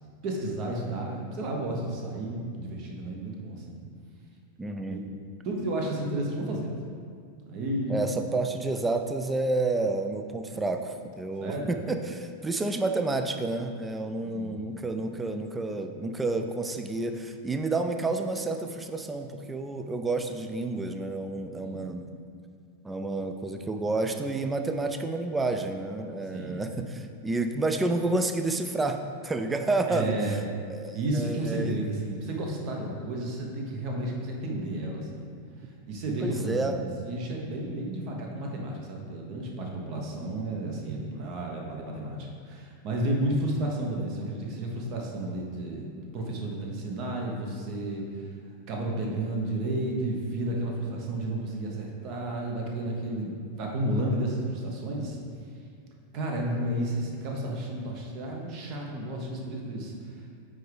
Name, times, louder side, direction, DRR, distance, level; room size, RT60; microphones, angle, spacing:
voice 1, 0.2-3.8 4.9-5.0 5.4-6.8 7.5-8.1 11.4-11.7 14.2-14.8 21.5-21.9 26.3-26.7 29.9-30.4 30.9-35.3 35.9-36.7 37.0-45.9 46.1-48.3 48.7-55.2 56.1-60.2, right 1 dB, 40° right, 0 dB, 1.0 m, -32 dB
voice 2, 4.6-5.0 7.9-22.1 22.8-30.2 30.7-31.8 36.2-36.8, right 2 dB, 10° right, 6 dB, 0.4 m, -30 dB
9.0 x 3.4 x 3.4 m, 2.2 s
figure-of-eight pair, 90°, 0 cm